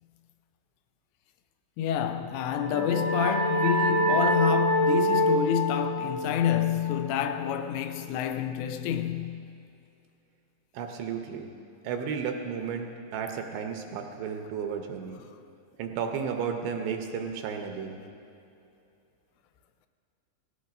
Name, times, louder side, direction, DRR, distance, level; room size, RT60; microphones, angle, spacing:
voice 1, 1.8-9.4, left 9 dB, 85° left, 2.7 m, -28 dB
sound 1, 2.3-7.7, right 1 dB, 40° left, 1.5 m, -27 dB
voice 2, 10.7-11.5 11.8-15.2 15.8-18.0, right 6 dB, 80° right, 2.8 m, -33 dB
17.5 x 16.0 x 2.6 m
omnidirectional pair, 5.2 m